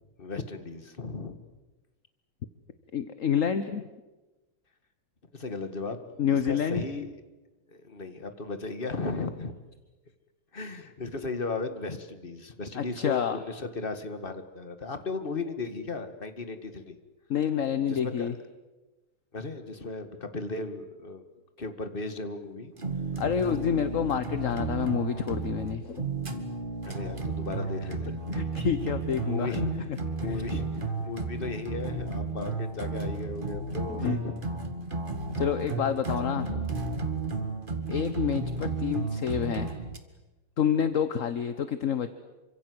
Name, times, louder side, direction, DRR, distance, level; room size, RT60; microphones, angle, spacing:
voice 1, 0.2-1.4 5.3-6.0 6.3-7.2 7.7-9.5 10.5-17.0 17.9-18.4 19.3-21.2 21.6-22.7 26.8-28.4 29.2-29.9 30.2-34.4 36.2-36.9, left 3 dB, 25° left, 9 dB, 1.9 m, -36 dB
voice 2, 2.9-3.8 6.2-6.8 12.7-13.4 17.3-18.3 23.2-26.0 27.9-28.0 28.3-29.7 30.2-30.3 33.9-34.2 35.4-36.5 37.9-39.7 40.6-42.1, left 8 dB, 45° left, 11 dB, 1.1 m, -28 dB
sound 1, 22.8-40.0, right 3 dB, 25° right, 2.0 m, -33 dB
28.0 x 25.5 x 7.9 m, 1.1 s
omnidirectional pair, 2.3 m